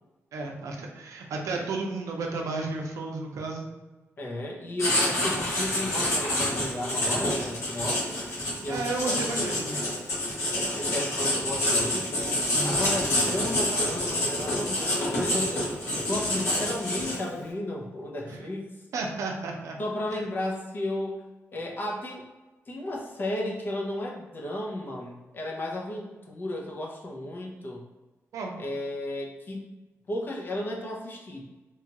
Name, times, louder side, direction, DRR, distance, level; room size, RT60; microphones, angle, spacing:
voice 1, 0.3-3.7 8.7-9.8 12.5-12.8 18.2-18.4 18.9-19.8 20.1-20.2 28.3-28.5, right 3 dB, 90° right, 1 dB, 0.5 m, -33 dB
voice 2, 4.2-8.2 8.6-8.9 9.4-10.0 10.5-12.1 12.6-15.7 16.0-18.7 19.8-21.2 21.5-22.3 22.7-27.9 28.6-29.7 30.1-31.4, left 1 dB, 40° left, -1 dB, 0.6 m, -34 dB
Writing, 4.8-17.4, left 1 dB, 70° left, 1.3 m, -27 dB
2.9 x 2.3 x 2.8 m, 1.1 s
wide cardioid pair, 135°, 5 cm